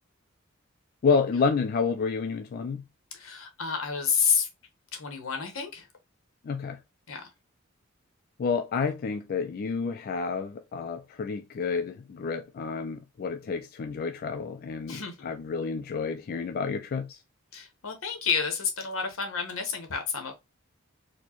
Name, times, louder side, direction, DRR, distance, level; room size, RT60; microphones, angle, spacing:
voice 1, 1.0-2.8 6.4-6.8 8.4-17.2, left 5 dB, 45° left, 0.3 m, -29 dB
voice 2, 3.1-4.5 4.9-5.9 7.1-7.3 14.8-15.3 17.5-20.3, left 6 dB, 85° left, 1.0 m, -30 dB
4.3 x 2.1 x 2.9 m
head